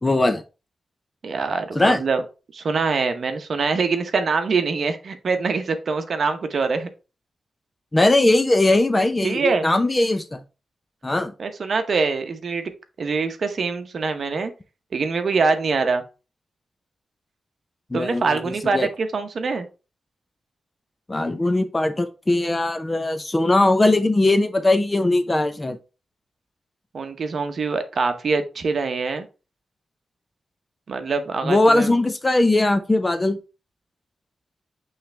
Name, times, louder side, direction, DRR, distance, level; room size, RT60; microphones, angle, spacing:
voice 1, 0.0-0.4 1.7-2.0 7.9-10.4 11.0-11.3 17.9-18.9 21.1-25.8 31.4-33.4, left 2 dB, 20° left, 8 dB, 0.7 m, -20 dB
voice 2, 1.2-2.2 2.5-6.9 9.2-9.7 11.4-12.7 13.0-14.5 14.9-16.0 17.9-19.7 26.9-29.3 30.9-31.9, right 4 dB, 55° right, 8 dB, 0.9 m, -24 dB
8.5 x 3.3 x 3.3 m, 0.31 s
wide cardioid pair, 110°, 0 cm